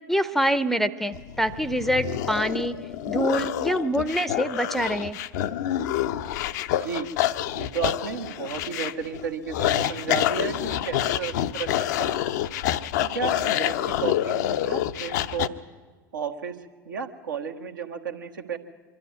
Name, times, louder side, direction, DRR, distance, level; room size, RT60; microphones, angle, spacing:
voice 1, 0.1-2.8 3.1-5.2, equal, ahead, 16 dB, 0.7 m, -25 dB
sound 1, 1.1-15.5, left 12 dB, 60° left, 0.6 m, -27 dB
voice 2, 6.8-7.1 7.5-12.2 13.0-15.5 16.1-16.6 16.8-18.6, right 6 dB, 75° right, 3 dB, 1.4 m, -33 dB
23.5 x 12.5 x 9.5 m, 1.5 s
figure-of-eight pair, 80°, 11 cm